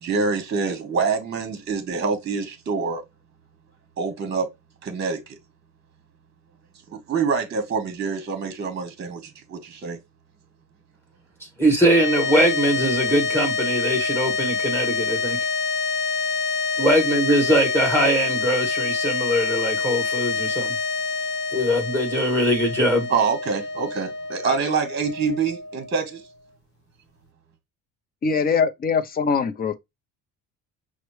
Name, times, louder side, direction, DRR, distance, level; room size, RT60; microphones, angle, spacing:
voice 1, 0.0-3.0 4.0-4.5 4.8-5.4 6.9-10.0 23.1-26.2, right 5 dB, 35° right, 1.1 m, -26 dB
voice 2, 11.6-15.4 16.8-20.7 21.5-23.1, right 1 dB, 5° left, 2.2 m, -21 dB
sound 1, 11.8-26.2, left 4 dB, 65° left, 1.0 m, -26 dB
voice 3, 28.2-29.7, left 5 dB, 30° left, 0.6 m, -22 dB
5.8 x 2.1 x 3.1 m
cardioid pair, 130°, 32 cm